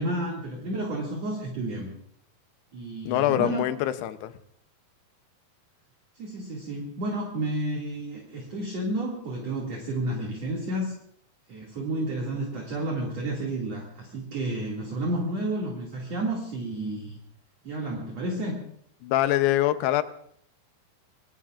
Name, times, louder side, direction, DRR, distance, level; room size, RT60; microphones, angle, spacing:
voice 1, 0.0-1.9 2.7-3.7 6.1-10.9 11.5-17.2 17.6-18.6, right 1 dB, 45° right, -2 dB, 3.0 m, -31 dB
voice 2, 3.1-4.3 19.0-20.0, left 14 dB, 85° left, 11 dB, 2.9 m, -24 dB
26.0 x 21.5 x 2.5 m, 0.67 s
omnidirectional pair, 4.7 m